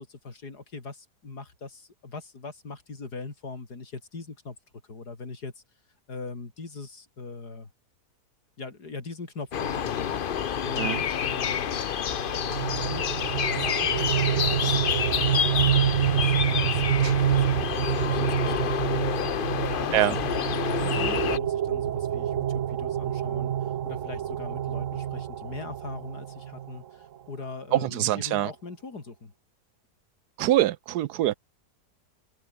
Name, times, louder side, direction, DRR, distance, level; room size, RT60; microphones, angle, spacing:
voice 1, 0.0-4.6 4.9-5.6 6.1-7.7 8.6-10.2 10.6-11.8 12.9-13.2 13.5-29.3, left 3 dB, 80° left, 4.2 m, -41 dB
sound 1, 9.5-21.4, left 8 dB, 50° left, 0.6 m, -28 dB
sound 2, 12.1-26.8, right 10 dB, 60° right, 1.1 m, -28 dB
voice 2, 27.7-28.5 30.4-31.4, right 14 dB, 80° right, 1.2 m, -24 dB
open air
omnidirectional pair, 1.7 m